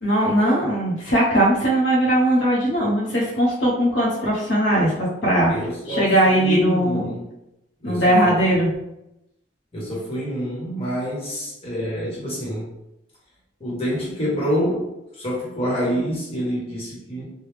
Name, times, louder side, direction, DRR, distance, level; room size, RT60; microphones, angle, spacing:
voice 1, 0.0-5.5 5.9-7.1 7.8-8.7, right 1 dB, 70° left, -5 dB, 0.9 m, -19 dB
voice 2, 5.5-7.2 7.8-8.4 9.7-12.7 13.6-17.3, equal, 30° left, -5 dB, 1.1 m, -27 dB
3.2 x 2.2 x 3.3 m, 0.87 s
head